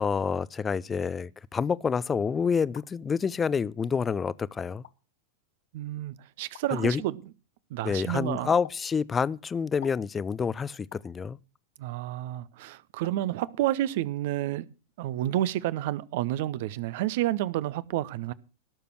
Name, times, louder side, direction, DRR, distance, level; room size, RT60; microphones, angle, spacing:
voice 1, 0.0-4.8 6.7-7.0 7.8-11.4, left 6 dB, 20° left, 0.6 m, -28 dB
sound 1, 2.8-2.9 3.8-3.9 4.7-5.0 6.5-6.7 8.6-8.9 9.8-10.1 10.9-11.1 12.4-12.5 13.0-13.2 13.5-13.6, left 12 dB, 55° left, 1.0 m, -48 dB
voice 2, 5.7-7.1 7.7-8.5 11.8-14.7 15.0-18.3, right 14 dB, 50° right, 0.8 m, -30 dB
18.0 x 6.9 x 6.0 m
figure-of-eight pair, 90°, 0 cm